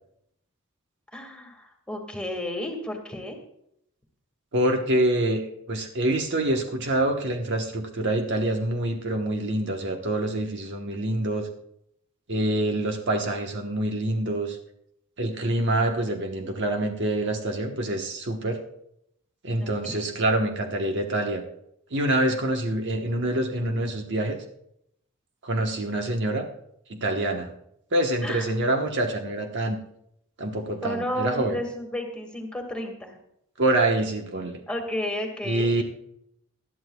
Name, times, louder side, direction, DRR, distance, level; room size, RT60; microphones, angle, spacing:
voice 1, 1.1-3.4 19.6-20.2 28.2-28.4 30.8-33.2 34.7-35.8, left 1 dB, 5° left, 2 dB, 1.9 m, -32 dB
voice 2, 4.5-5.4 5.7-11.5 12.3-14.6 15.2-18.6 19.4-21.4 21.9-24.4 25.4-26.5 26.9-27.5 27.9-29.8 30.4-31.6 33.6-34.6 35.4-35.8, right 1 dB, 55° right, 3 dB, 1.2 m, -26 dB
19.0 x 12.0 x 2.3 m, 0.74 s
head